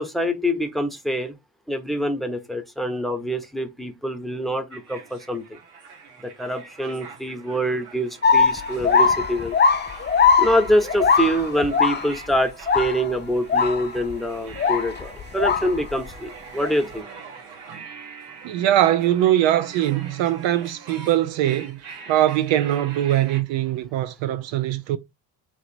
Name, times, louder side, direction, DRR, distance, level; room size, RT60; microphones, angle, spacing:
voice 1, 0.0-1.3 1.7-5.6 6.2-9.6 10.4-17.1, equal, ahead, 0.9 m, -25 dB
sound 1, 4.7-23.4, right 5 dB, 90° right, 1.0 m, -43 dB
sound 2, 8.2-12.4 12.7-13.1 13.5-14.1 14.5-16.1 16.6-16.7, left 5 dB, 25° left, 0.5 m, -20 dB
voice 2, 18.4-25.0, right 12 dB, 65° right, 0.5 m, -22 dB
3.1 x 2.9 x 4.2 m
supercardioid pair, 55°, 48 cm